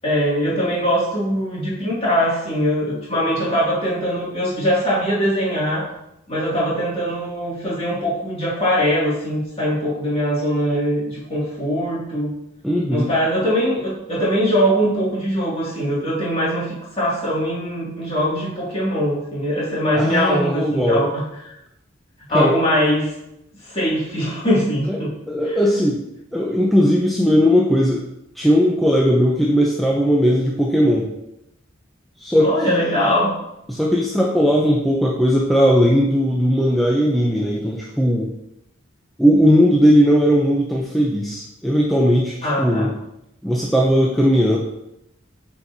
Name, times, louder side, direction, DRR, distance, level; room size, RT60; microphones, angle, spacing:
voice 1, 0.0-5.9 6.3-12.3 12.9-21.5 22.3-23.1 23.6-25.1 32.4-33.3 42.4-42.9, equal, 30° left, -7 dB, 2.3 m, -21 dB
voice 2, 12.6-13.1 19.9-21.1 22.3-22.6 24.9-25.0 25.3-26.0 26.3-28.0 28.4-31.1 32.2-32.9 33.7-38.3 39.2-42.9 43.4-44.6, equal, ahead, -3 dB, 0.5 m, -17 dB
8.5 x 4.4 x 2.7 m, 0.84 s
head